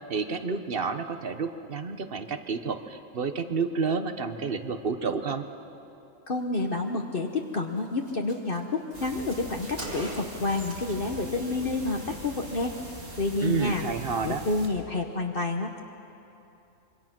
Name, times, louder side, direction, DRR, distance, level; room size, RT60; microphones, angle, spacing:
voice 1, 0.1-5.4 13.4-14.4, right 5 dB, 45° right, 9 dB, 1.2 m, -30 dB
voice 2, 6.3-12.7 13.2-13.8 14.2-15.8, left 2 dB, 45° left, 2 dB, 1.2 m, -29 dB
Car, 7.4-7.5 7.8-7.9 8.1-11.0 11.3-11.6, right 1 dB, 30° right, 2.2 m, -42 dB
sound 1, 8.9-14.7, right 1 dB, 70° right, 3.6 m, -42 dB
26.0 x 24.0 x 6.0 m, 2.8 s
omnidirectional pair, 1.4 m